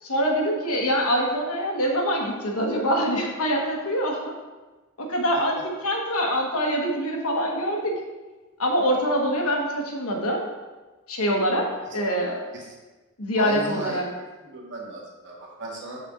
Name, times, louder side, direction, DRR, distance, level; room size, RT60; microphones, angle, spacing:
voice 1, 0.0-4.2 5.0-5.6 5.8-8.0 8.6-10.4 11.1-11.7 11.9-12.4 13.2-14.1, equal, 70° left, 0 dB, 1.2 m, -24 dB
voice 2, 13.4-14.0 14.4-16.0, right 2 dB, 55° right, -3 dB, 1.5 m, -35 dB
5.9 x 5.6 x 3.7 m, 1.2 s
head